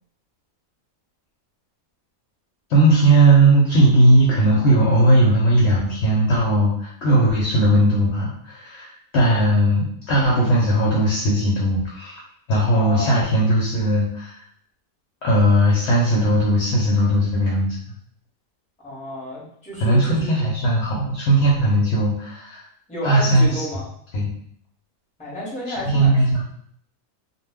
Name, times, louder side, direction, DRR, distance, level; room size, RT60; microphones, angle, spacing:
voice 1, 2.7-12.2 12.5-14.4 15.2-17.8 19.8-22.6 23.0-23.6 24.1-24.3 25.8-26.4, right 1 dB, 60° left, -5 dB, 0.8 m, -18 dB
voice 2, 12.7-13.3 18.8-20.3 22.9-23.9 25.2-26.4, equal, 5° left, -7 dB, 0.8 m, -31 dB
2.3 x 2.2 x 3.4 m, 0.65 s
omnidirectional pair, 1.5 m